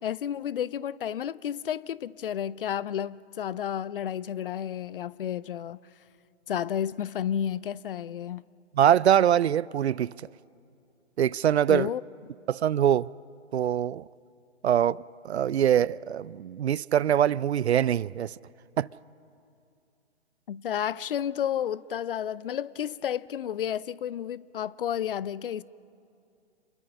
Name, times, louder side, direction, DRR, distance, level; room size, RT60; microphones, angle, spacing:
voice 1, 0.0-5.8 6.5-8.5 11.7-12.0 20.5-25.6, left 9 dB, 50° left, 0.5 m, -31 dB
voice 2, 8.8-10.1 11.2-11.9 12.5-13.1 13.5-14.1 14.6-18.3 18.8-18.9, right 10 dB, 70° right, 0.5 m, -23 dB
28.0 x 22.5 x 5.6 m
figure-of-eight pair, 130°, 34 cm